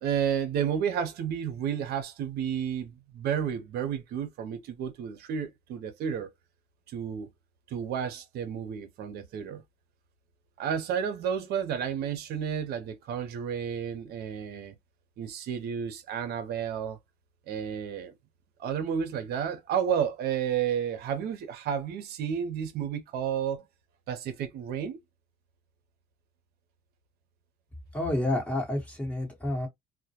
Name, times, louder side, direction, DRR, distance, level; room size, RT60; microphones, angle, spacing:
voice 1, 0.0-6.3 6.9-7.3 7.7-9.6 10.6-14.7 15.2-17.0 17.5-18.1 18.6-23.6 24.1-25.0, right 8 dB, 75° right, 0.6 m, -31 dB
voice 2, 27.9-29.7, left 1 dB, 10° left, 1.1 m, -29 dB
2.1 x 2.1 x 2.7 m
cardioid pair, 110°, 17 cm